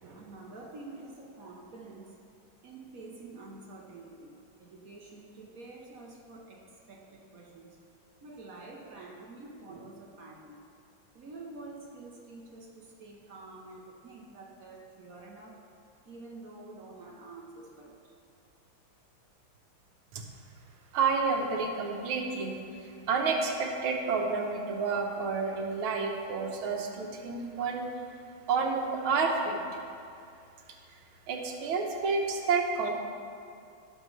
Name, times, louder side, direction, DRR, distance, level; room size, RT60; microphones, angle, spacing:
voice 1, 0.0-2.2 2.6-7.8 8.2-10.6 11.1-15.6 16.1-18.1, right 3 dB, 55° right, 0 dB, 1.1 m, -48 dB
voice 2, 20.9-27.9 28.5-29.6 31.3-32.9, right 4 dB, 80° right, 2 dB, 1.8 m, -30 dB
17.0 x 6.2 x 3.2 m, 2.5 s
omnidirectional pair, 2.3 m